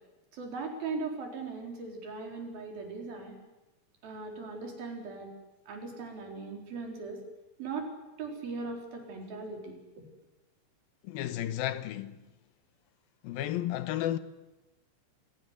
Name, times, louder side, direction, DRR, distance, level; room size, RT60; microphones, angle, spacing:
voice 1, 0.3-3.4 4.0-5.3 5.7-7.2 7.6-7.9 8.2-9.8, right 4 dB, 80° right, 6.1 m, -39 dB
voice 2, 11.0-12.2 13.2-14.2, left 12 dB, 85° left, 2.9 m, -33 dB
26.5 x 17.0 x 9.7 m
omnidirectional pair, 4.1 m